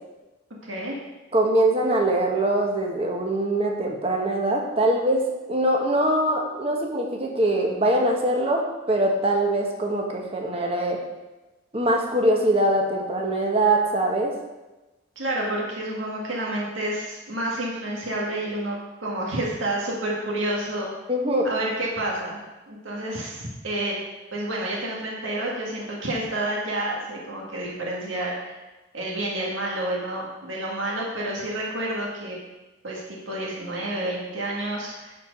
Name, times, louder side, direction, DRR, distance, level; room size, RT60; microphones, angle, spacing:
voice 1, 1.3-11.0 11.7-14.3 21.1-21.5, right 1 dB, 30° right, 0 dB, 1.2 m, -23 dB
voice 2, 15.2-20.9 21.4-24.0 24.3-28.6 28.9-32.4 32.8-35.2, right 1 dB, 85° right, -3 dB, 1.9 m, -29 dB
11.5 x 4.6 x 5.3 m, 1.1 s
head